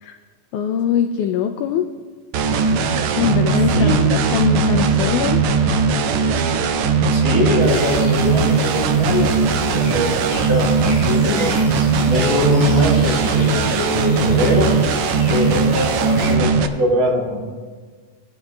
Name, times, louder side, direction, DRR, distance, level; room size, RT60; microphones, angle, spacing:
voice 1, 0.5-1.9 3.0-4.0 4.3-5.4, left 8 dB, 85° left, 7 dB, 1.7 m, -22 dB
sound 1, 2.3-16.7, right 5 dB, 90° right, 1.5 m, -18 dB
voice 2, 3.7-4.1 7.1-11.5 12.1-14.8 15.3-17.5, left 1 dB, 65° right, -3 dB, 4.0 m, -22 dB
sound 2, 7.6-16.4, left 2 dB, 45° left, 3.6 m, -34 dB
18.0 x 11.0 x 2.2 m, 1.5 s
omnidirectional pair, 3.9 m